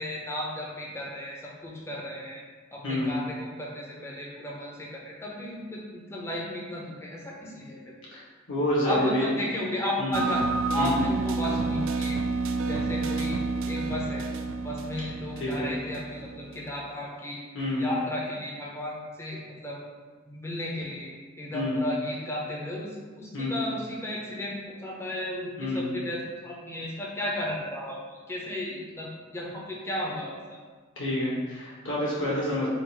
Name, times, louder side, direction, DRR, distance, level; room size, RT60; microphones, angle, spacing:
voice 1, 0.0-2.4 2.7-7.8 8.8-10.4 10.7-12.2 12.6-13.4 13.7-14.2 14.6-17.4 17.8-19.8 20.3-21.1 21.4-30.6, left 1 dB, 15° left, -3 dB, 0.6 m, -34 dB
voice 2, 2.8-3.2 8.1-8.2 8.5-9.2 10.0-10.2 10.7-11.0 15.4-15.7 17.5-17.9 21.5-21.8 23.3-23.6 25.6-25.9 31.0-32.7, left 1 dB, 60° left, -7 dB, 1.3 m, -28 dB
sound 1, 10.1-16.7, right 3 dB, 75° right, 0.3 m, -30 dB
3.9 x 2.5 x 4.2 m, 1.4 s
head